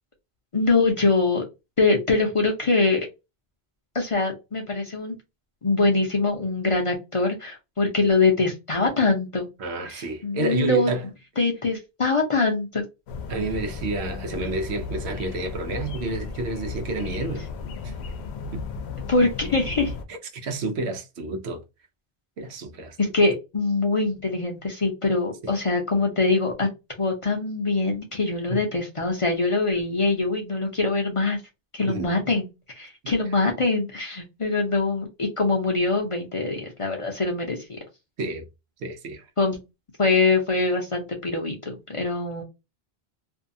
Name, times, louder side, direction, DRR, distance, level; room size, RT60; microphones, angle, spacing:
voice 1, 0.5-1.4 1.8-3.1 3.9-5.2 5.6-9.5 9.9-10.9 11.4-12.8 19.1-19.9 23.0-26.7 27.0-31.4 31.7-32.5 32.7-37.8 39.4-39.6 40.0-42.4, left 3 dB, 40° left, 0.6 m, -23 dB
voice 2, 9.6-11.1 13.3-17.5 17.8-17.9 18.5-18.6 20.1-21.6 22.4-23.0 25.4-25.5 28.5-28.6 31.9-32.1 38.2-38.5 38.8-39.3, right 2 dB, 90° right, 0.9 m, -30 dB
sound 1, 13.1-20.0, left 4 dB, 80° left, 0.8 m, -34 dB
2.6 x 2.2 x 2.5 m
omnidirectional pair, 1.1 m